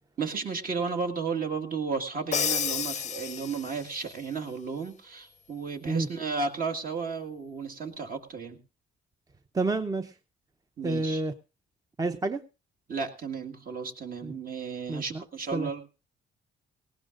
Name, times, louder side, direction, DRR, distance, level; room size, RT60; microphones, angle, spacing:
voice 1, 0.2-8.6 10.8-11.2 12.9-15.9, right 5 dB, 45° right, 5 dB, 1.9 m, -33 dB
Crash cymbal, 2.3-4.0, left 7 dB, 35° left, 0.6 m, -30 dB
voice 2, 9.5-10.1 10.8-11.3 12.0-12.4 14.2-14.3 14.9-15.2 15.5-15.7, right 3 dB, 20° right, 9 dB, 0.7 m, -29 dB
18.5 x 17.0 x 2.6 m, 0.30 s
cardioid pair, 90°, 20 cm